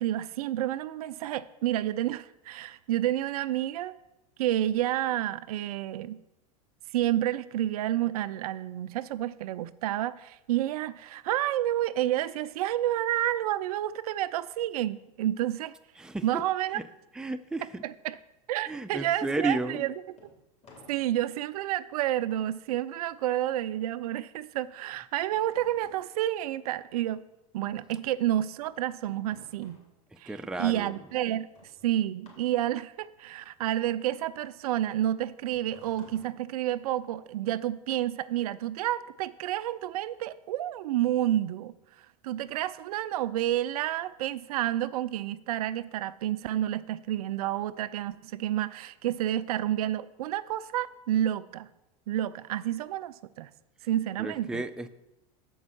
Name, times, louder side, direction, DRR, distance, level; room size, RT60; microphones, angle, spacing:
voice 1, 0.0-4.0 4.4-6.2 6.9-15.8 16.2-16.8 17.8-18.2 18.5-19.9 20.9-27.3 27.5-29.8 30.2-30.3 30.6-31.5 31.8-51.7 52.1-53.5 53.8-54.6, right 13 dB, 75° right, 15 dB, 0.4 m, -30 dB
voice 2, 16.0-16.5 16.7-16.9 17.1-17.8 18.7-19.9 30.3-31.0 54.2-54.9, right 2 dB, 5° right, 8 dB, 0.4 m, -33 dB
sound 1, 20.1-27.3 27.6-37.3, left 3 dB, 30° left, 3.2 m, -59 dB
7.2 x 5.3 x 6.2 m, 0.91 s
hypercardioid pair, 100°, 19 cm